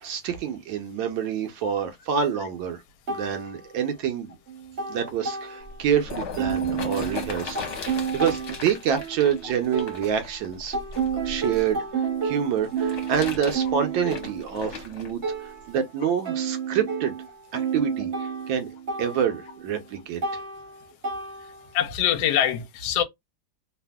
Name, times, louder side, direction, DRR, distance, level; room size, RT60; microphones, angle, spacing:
voice 1, 0.0-2.8 3.1-4.4 4.9-7.6 7.8-10.8 11.1-17.1 17.5-18.1 18.5-18.7 19.0-20.4, right 8 dB, 75° right, 1.3 m, -27 dB
sound 1, 3.1-4.2 4.5-6.0 6.4-10.4 10.7-21.8, right 6 dB, 45° right, 0.9 m, -31 dB
sound 2, 5.6-11.7 12.6-15.1 15.8-15.9, left 5 dB, 55° left, 1.3 m, -37 dB
voice 2, 21.7-23.0, left 10 dB, 75° left, 1.3 m, -23 dB
3.3 x 2.4 x 2.2 m
omnidirectional pair, 2.3 m